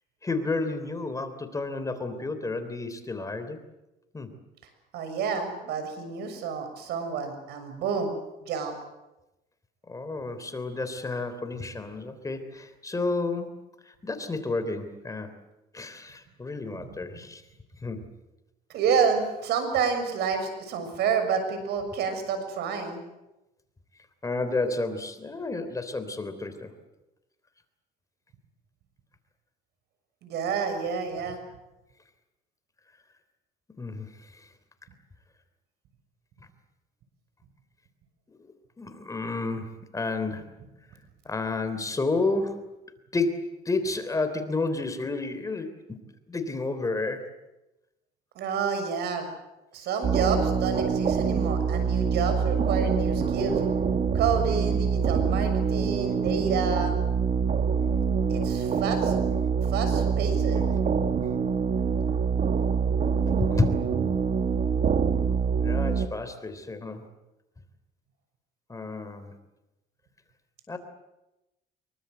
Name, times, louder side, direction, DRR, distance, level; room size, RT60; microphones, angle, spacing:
voice 1, 0.2-3.6 4.1-4.3 9.9-13.6 14.0-15.3 15.7-17.4 17.8-18.0 24.2-26.7 33.8-34.1 34.3-34.4 38.3-38.4 38.8-40.5 41.2-42.7 43.1-46.0 46.3-47.3 63.4-63.9 65.6-67.0 68.7-69.3 70.7-70.8, left 3 dB, 20° left, 9 dB, 3.3 m, -31 dB
voice 2, 4.9-8.1 8.5-8.7 16.8-16.9 18.7-23.0 30.2-31.4 48.3-49.3 49.7-53.6 54.1-56.9 58.3-59.1 59.7-60.6, right 6 dB, 80° right, 8 dB, 6.7 m, -29 dB
sound 1, 50.0-66.1, right 6 dB, 45° right, 1.5 m, -25 dB
25.5 x 23.0 x 8.0 m, 0.97 s
cardioid pair, 110°, 17 cm